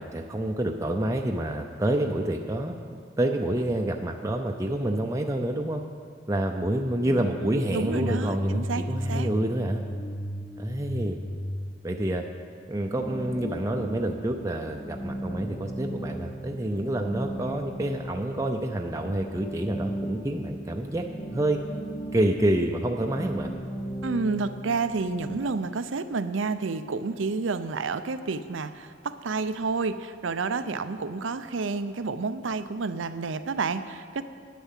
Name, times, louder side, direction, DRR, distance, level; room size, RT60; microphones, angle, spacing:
voice 1, 0.0-2.8 3.2-5.8 6.3-9.8 10.6-11.2 11.8-12.2 12.7-21.0 21.3-21.6 22.1-23.5, right 1 dB, 15° right, 2 dB, 0.5 m, -28 dB
sound 1, 7.0-12.9, equal, 85° left, 1.6 m, -34 dB
voice 2, 7.7-9.3 24.0-34.2, right 4 dB, 85° right, 11 dB, 0.6 m, -30 dB
sound 2, 12.8-25.4, right 1 dB, 35° left, 0.8 m, -37 dB
10.5 x 9.2 x 7.4 m, 2.2 s
head